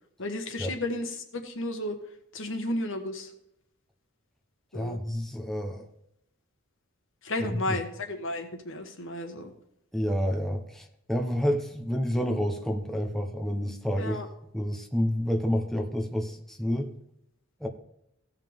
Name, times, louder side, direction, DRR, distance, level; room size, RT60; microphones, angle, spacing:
voice 1, 0.2-1.9 2.3-3.3 4.7-5.0 7.2-9.5 14.0-14.3, left 1 dB, 65° left, 1.6 m, -33 dB
voice 2, 4.7-5.9 7.4-7.8 9.9-14.2 14.5-16.9 17.6-17.7, equal, ahead, 1.0 m, -29 dB
16.5 x 5.7 x 3.6 m
head